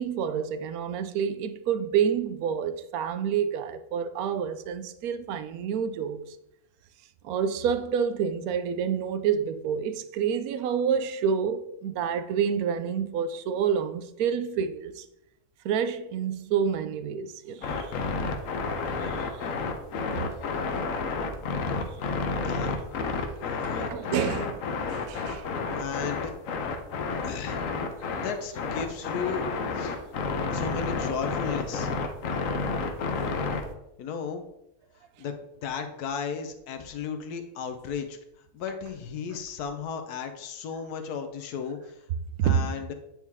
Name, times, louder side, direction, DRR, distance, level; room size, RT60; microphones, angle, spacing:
voice 1, 0.0-6.2 7.2-15.0 15.6-17.9 19.0-19.3 23.6-24.6 24.9-25.4 42.4-42.7, right 7 dB, 75° right, 1.0 m, -28 dB
sound 1, 17.6-33.7, left 4 dB, 65° left, 1.1 m, -30 dB
voice 2, 22.4-22.8 23.4-23.9 25.7-26.3 27.2-27.6 28.2-29.4 29.7-30.0 30.5-31.9 34.0-34.4 35.2-35.4 35.6-38.2 38.5-42.0 42.4-42.9, left 6 dB, 80° left, 1.3 m, -34 dB
8.8 x 4.6 x 3.5 m
omnidirectional pair, 1.6 m